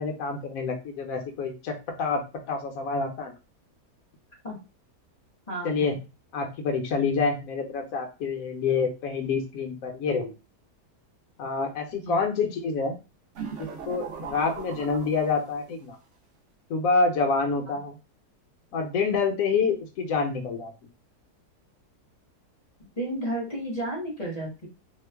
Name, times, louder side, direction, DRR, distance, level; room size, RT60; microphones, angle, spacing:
voice 1, 0.0-2.2 2.5-3.3 5.6-6.0 6.3-10.3 11.4-13.0 13.6-16.0 16.7-18.0 18.7-20.7, left 4 dB, 65° left, 4 dB, 1.1 m, -27 dB
voice 2, 5.5-5.9 11.9-12.2 23.0-24.7, right 1 dB, 30° left, -3 dB, 0.8 m, -32 dB
sound 1, 13.3-15.7, right 6 dB, 60° right, 0.8 m, -38 dB
2.9 x 2.1 x 3.3 m, 0.30 s
omnidirectional pair, 1.7 m